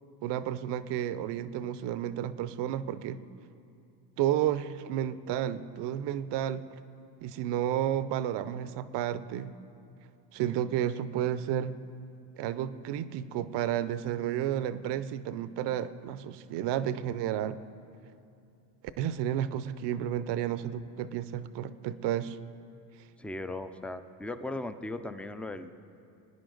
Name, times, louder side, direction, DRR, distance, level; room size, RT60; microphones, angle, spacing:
voice 1, 0.2-3.2 4.2-6.6 7.2-9.5 10.3-11.8 12.4-17.6 19.0-22.4, right 11 dB, 60° right, 15 dB, 0.6 m, -31 dB
voice 2, 23.2-25.7, left 2 dB, 5° left, 10 dB, 0.3 m, -38 dB
20.5 x 9.8 x 3.9 m, 2.5 s
supercardioid pair, 80°, 46 cm